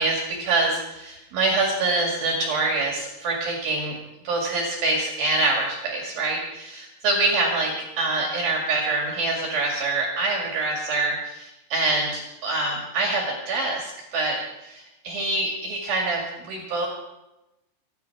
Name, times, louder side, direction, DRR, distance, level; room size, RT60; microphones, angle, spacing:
voice 1, 0.0-4.0 4.2-16.9, right 2 dB, 60° right, 0 dB, 3.6 m, -25 dB
25.5 x 10.0 x 4.8 m, 0.95 s
omnidirectional pair, 5.3 m